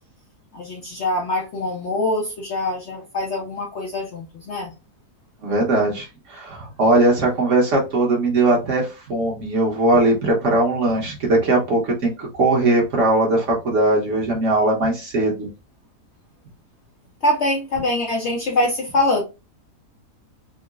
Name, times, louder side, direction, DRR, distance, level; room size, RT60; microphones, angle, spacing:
voice 1, 0.5-4.7 17.2-19.2, left 1 dB, 60° left, 0 dB, 0.7 m, -23 dB
voice 2, 5.4-15.5, right 2 dB, 55° right, -2 dB, 1.2 m, -19 dB
3.8 x 2.0 x 2.3 m, 0.28 s
omnidirectional pair, 1.7 m